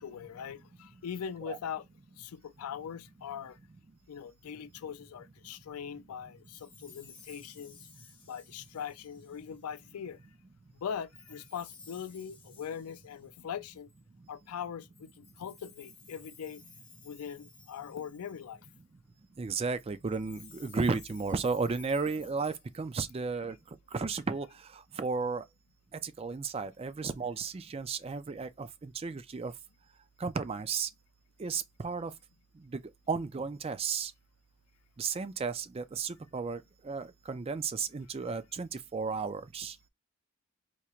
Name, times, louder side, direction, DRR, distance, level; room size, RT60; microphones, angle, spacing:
voice 1, 0.0-1.9 2.2-3.6 4.1-7.9 8.3-10.2 10.7-13.9 14.3-16.6 17.0-18.7, left 7 dB, 90° left, 0.4 m, -41 dB
Chime, 6.4-9.8 11.1-14.0 14.9-18.7 20.0-23.1, left 5 dB, 20° left, 1.1 m, -56 dB
voice 2, 19.4-23.6 23.9-24.5 24.7-25.4 26.0-29.5 30.2-30.9 31.4-32.1 33.1-34.1 35.0-39.8, right 4 dB, 25° right, 0.3 m, -34 dB
4.4 x 2.8 x 2.4 m
head